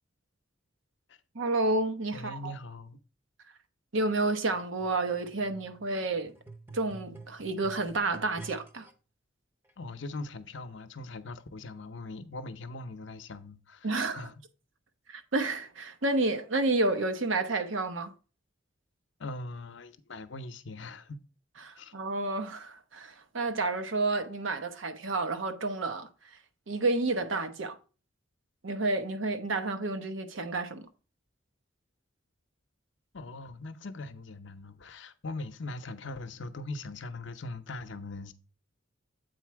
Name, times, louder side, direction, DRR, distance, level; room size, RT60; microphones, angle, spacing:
voice 1, 1.3-2.5 3.9-6.3 6.7-8.9 13.8-14.3 15.1-18.1 21.6-26.4 26.7-27.8 28.6-30.9, right 2 dB, 75° right, 0.9 m, -30 dB
voice 2, 2.1-3.0 9.8-13.9 14.1-14.3 19.2-21.2 21.8-21.9 33.1-38.3, left 2 dB, 65° left, 0.7 m, -41 dB
sound 1, 4.5-8.9 9.7-9.8, right 3 dB, 10° right, 0.7 m, -49 dB
8.0 x 4.2 x 4.6 m
head